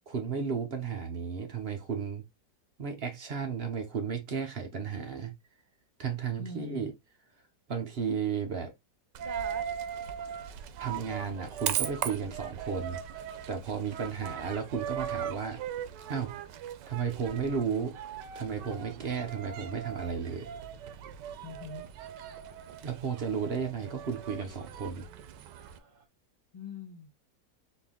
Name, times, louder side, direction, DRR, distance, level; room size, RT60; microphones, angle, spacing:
voice 1, 0.1-2.2 2.8-5.3 6.0-6.9 7.7-8.7 10.8-13.0 13.5-15.6 16.1-16.4 16.9-18.0 18.3-20.5 22.8-25.1, right 6 dB, 50° right, 0.8 m, -33 dB
voice 2, 6.4-6.9 21.4-21.8 26.5-27.2, left 4 dB, 30° left, 0.5 m, -43 dB
Coin (dropping), 9.1-25.8, right 9 dB, 85° right, 1.2 m, -39 dB
sound 1, 18.5-22.4 24.2-24.7 25.1-25.2 25.4-26.1, right 8 dB, 70° right, 1.6 m, -53 dB
4.2 x 2.7 x 3.5 m
omnidirectional pair, 1.8 m